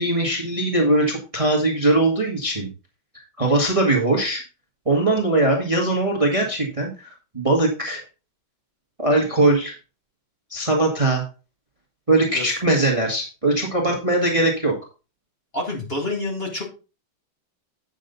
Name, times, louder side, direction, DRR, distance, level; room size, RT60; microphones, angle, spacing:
voice 1, 0.0-2.7 3.1-4.4 4.8-8.0 9.0-9.7 10.5-11.2 12.1-14.7, right 2 dB, 15° right, 0 dB, 1.6 m, -21 dB
voice 2, 15.5-16.6, left 2 dB, 30° left, -1 dB, 2.4 m, -28 dB
8.9 x 6.8 x 4.0 m, 0.32 s
omnidirectional pair, 2.2 m